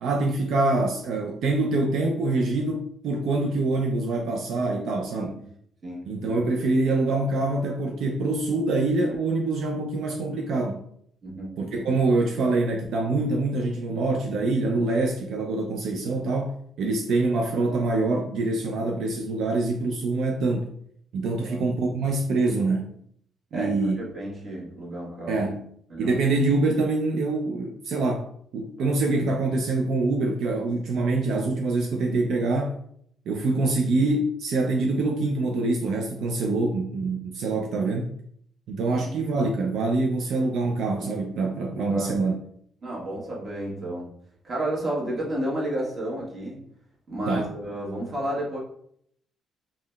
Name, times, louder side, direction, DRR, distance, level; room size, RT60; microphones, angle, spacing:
voice 1, 0.0-5.3 6.1-10.8 11.6-20.7 21.1-22.9 23.5-24.0 25.3-25.6 26.0-28.3 28.5-32.8 33.3-38.2 38.7-42.3 47.3-47.5, right 2 dB, 75° right, 0.3 m, -25 dB
voice 2, 23.5-25.5 25.9-26.2 28.8-29.0 38.9-39.2 41.9-42.1 42.8-44.1 44.4-46.7 47.1-48.6, right 1 dB, 40° right, 1.1 m, -31 dB
3.7 x 2.0 x 2.2 m
cardioid pair, 90°, 0 cm